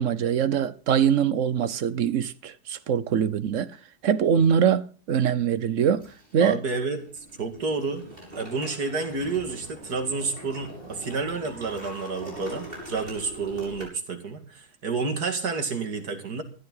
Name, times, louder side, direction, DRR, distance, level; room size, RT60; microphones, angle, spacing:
voice 1, 0.0-3.7 4.0-6.6, right 8 dB, 55° right, 1.2 m, -23 dB
sound 1, 6.0-6.5 6.9-13.8, equal, 35° right, 6.7 m, -43 dB
voice 2, 6.4-7.0 7.4-8.0 8.3-16.4, right 4 dB, 85° right, 2.8 m, -30 dB
16.0 x 12.5 x 3.9 m
omnidirectional pair, 1.6 m